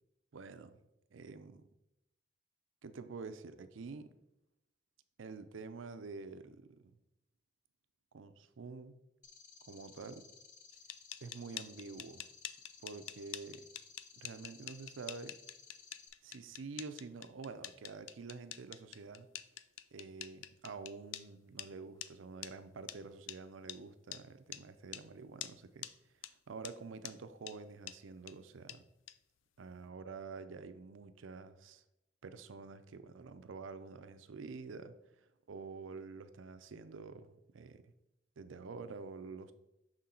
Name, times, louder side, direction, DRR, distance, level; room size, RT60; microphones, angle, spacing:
voice 1, 0.3-0.8 1.1-1.7 2.8-4.1 5.2-6.8 8.1-9.0 9.7-10.2 11.2-12.2 12.8-13.7 14.2-15.4 16.2-19.3 19.9-25.9 26.5-28.8 29.6-31.8 32.2-34.9 35.5-37.8 38.4-39.5, right 4 dB, 85° right, 11 dB, 0.5 m, -48 dB
sound 1, 9.2-16.1, left 5 dB, 40° left, 0.7 m, -58 dB
sound 2, 10.7-21.2 21.6-21.7 22.0-22.1 22.4-22.5 22.9-23.0 23.3-23.4 23.7-23.8 24.1-24.2 24.5-24.6 24.9-25.0 25.4-25.5 25.8-25.9 26.2-26.3 26.6-26.7 27.0-27.1 27.5-27.6 27.9-28.0 28.3-28.4 28.7-28.8 29.1-29.2, left 12 dB, 75° left, 0.4 m, -45 dB
6.1 x 3.9 x 4.3 m, 0.88 s
head